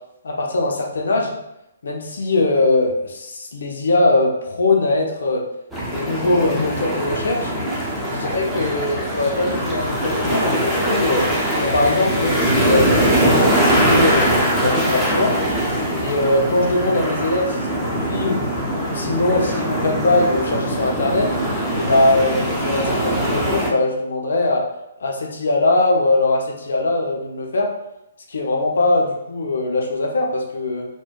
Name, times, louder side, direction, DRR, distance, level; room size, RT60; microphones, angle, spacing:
voice 1, 0.2-1.3 1.8-5.4 5.8-7.5 8.1-11.3 11.6-15.3 16.0-18.5 18.9-21.3 21.7-24.6 25.0-27.7 28.3-30.9, left 2 dB, 60° left, 1 dB, 0.5 m, -21 dB
sound 1, 5.7-23.7, right 1 dB, 5° right, 0.4 m, -21 dB
2.6 x 2.1 x 2.2 m, 0.87 s
figure-of-eight pair, 125°, 0 cm